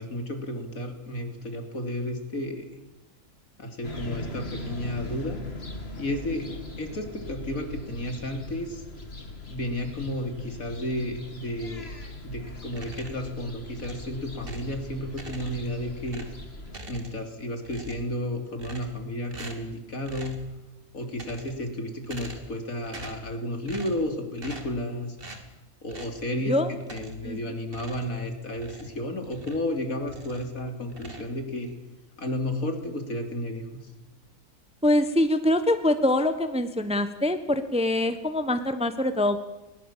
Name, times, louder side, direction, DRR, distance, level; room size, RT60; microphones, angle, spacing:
voice 1, 0.0-2.7 3.6-5.4 6.0-6.5 6.8-8.8 9.5-11.9 12.2-16.3 16.9-20.4 20.9-25.2 25.8-31.7 32.2-33.6, left 1 dB, 70° left, 5 dB, 3.4 m, -32 dB
sound 1, 3.8-16.8, left 2 dB, 45° left, 2.6 m, -40 dB
sound 2, 12.7-13.3 13.8-14.8 15.1-15.7 16.1-17.3 17.6-18.2 18.6-19.0 19.3-19.7 20.0-20.5 21.0-21.7 22.0-22.6 22.8-23.3 23.7-24.1 24.4-24.8 25.2-25.5 25.9-26.2 26.8-27.3 27.7-29.7 30.0-30.5 30.9-31.7, right 2 dB, 40° right, 2.6 m, -44 dB
voice 2, 34.8-39.4, left 1 dB, 5° right, 10 dB, 1.0 m, -24 dB
20.5 x 20.0 x 7.5 m, 0.99 s
omnidirectional pair, 1.5 m